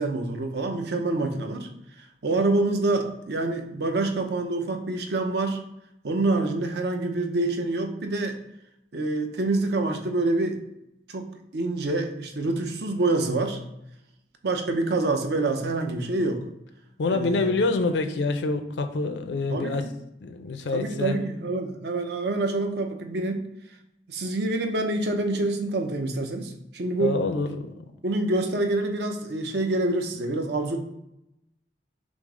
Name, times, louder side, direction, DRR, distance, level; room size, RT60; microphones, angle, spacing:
voice 1, 0.0-1.7 2.2-5.6 6.0-8.4 8.9-10.6 11.1-13.6 14.4-16.4 17.1-17.5 19.5-19.9 20.7-23.5 24.1-27.2 28.0-30.8, right 2 dB, 70° right, 4 dB, 0.6 m, -26 dB
voice 2, 17.0-19.9 20.2-21.2 27.0-27.7, left 3 dB, 85° left, 8 dB, 0.5 m, -26 dB
6.1 x 2.0 x 3.7 m, 0.84 s
head